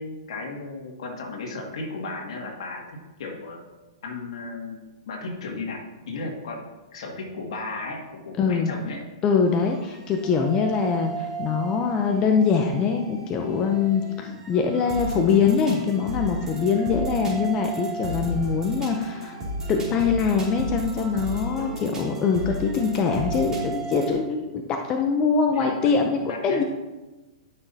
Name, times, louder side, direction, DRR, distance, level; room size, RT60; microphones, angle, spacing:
voice 1, 0.0-3.6 4.0-6.7 6.9-9.0 14.2-14.4 16.7-16.9 21.6-21.8 24.1-24.3 25.5-26.6, left 3 dB, 70° left, 0 dB, 2.1 m, -35 dB
voice 2, 8.4-8.7 9.2-19.4 19.7-26.6, left 5 dB, 25° left, 3 dB, 0.6 m, -23 dB
sound 1, 9.4-24.1, right 2 dB, 15° right, 2.7 m, -34 dB
12.0 x 6.0 x 2.8 m, 1.1 s
hypercardioid pair, 145°, 3 cm